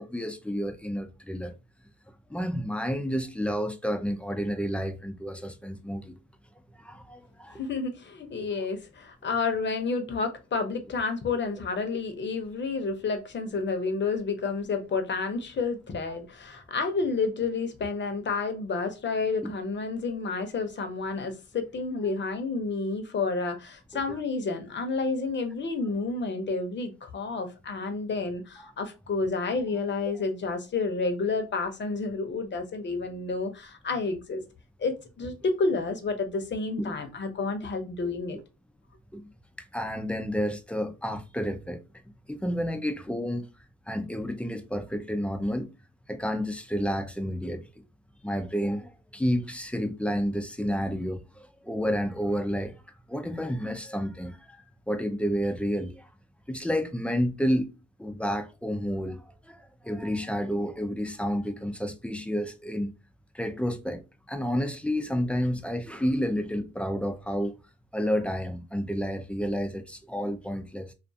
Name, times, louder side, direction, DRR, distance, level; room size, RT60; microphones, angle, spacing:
voice 1, 0.0-1.6 2.3-6.2 6.8-7.6 8.4-8.5 19.4-19.5 24.1-24.2 36.8-36.9 38.3-38.4 39.1-39.3 39.6-41.8 42.3-43.5 43.9-45.7 46.1-47.8 48.2-52.7 53.1-54.6 54.9-56.1 56.5-57.7 58.0-62.9 63.3-64.0 64.3-67.6 67.9-70.9, equal, 5° left, 0.4 m, -30 dB
voice 2, 7.5-34.4 34.8-38.4, left 4 dB, 40° left, 0.7 m, -30 dB
2.4 x 2.3 x 2.6 m
cardioid pair, 90°, 30 cm